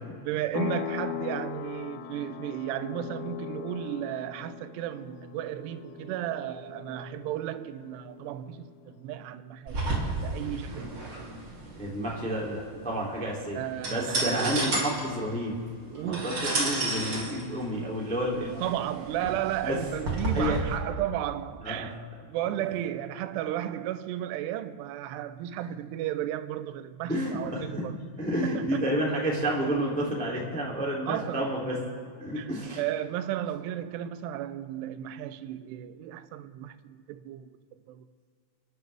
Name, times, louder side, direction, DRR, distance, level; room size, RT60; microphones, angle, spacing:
voice 1, 0.2-11.3 13.5-14.6 15.9-16.5 18.5-22.0 22.3-28.0 28.4-28.8 31.1-31.5 32.3-32.5 32.8-37.5 37.9-38.1, right 12 dB, 85° right, 2.7 m, -34 dB
sound 1, 0.5-8.9, left 11 dB, 80° left, 2.3 m, -39 dB
sound 2, 9.7-20.6, right 2 dB, 30° right, 2.7 m, -32 dB
voice 2, 11.7-15.6 16.0-18.5 19.6-19.8 20.3-20.6 21.6-21.9 27.1-27.8 28.2-31.7 32.2-32.8, equal, 5° left, 1.5 m, -30 dB
29.5 x 11.0 x 3.4 m
omnidirectional pair, 4.9 m